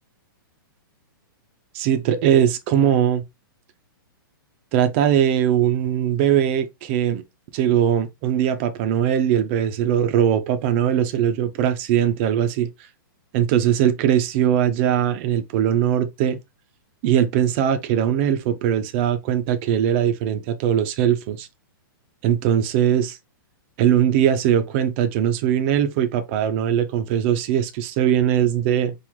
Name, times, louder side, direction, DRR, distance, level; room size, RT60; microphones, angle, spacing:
voice 1, 1.7-3.2 4.7-7.2 7.5-12.7 13.3-16.4 17.0-21.5 22.2-23.2 23.8-28.9, right 9 dB, 30° right, 0.6 m, -20 dB
4.7 x 2.5 x 3.6 m
hypercardioid pair, 160°, 12 cm